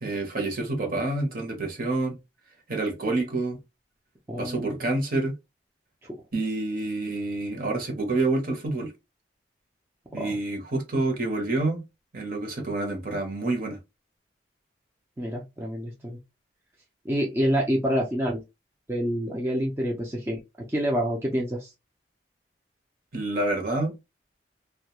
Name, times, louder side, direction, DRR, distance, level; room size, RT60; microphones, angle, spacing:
voice 1, 0.0-2.2 2.7-3.6 4.4-5.3 6.3-8.9 10.1-11.8 12.1-13.8 23.1-23.9, right 2 dB, 50° right, 0.9 m, -28 dB
voice 2, 4.3-4.7 10.2-10.4 15.2-16.2 17.0-18.4 18.9-20.4 20.7-21.7, equal, 15° right, 0.4 m, -27 dB
2.3 x 2.2 x 2.8 m
head